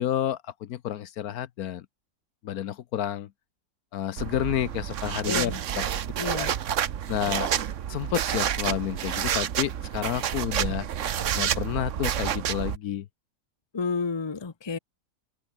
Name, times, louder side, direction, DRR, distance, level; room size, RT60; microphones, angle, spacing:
voice 1, 0.0-1.9 2.4-3.3 3.9-5.9 6.4-6.5 7.1-7.5 7.9-10.9 11.3-13.1, left 11 dB, 70° left, 1.2 m, -30 dB
sound 1, 4.2-12.8, right 9 dB, 55° right, 1.1 m, -29 dB
voice 2, 5.3-5.6 6.2-6.5 13.7-14.8, left 4 dB, 20° left, 0.9 m, -30 dB
open air
omnidirectional pair, 1.7 m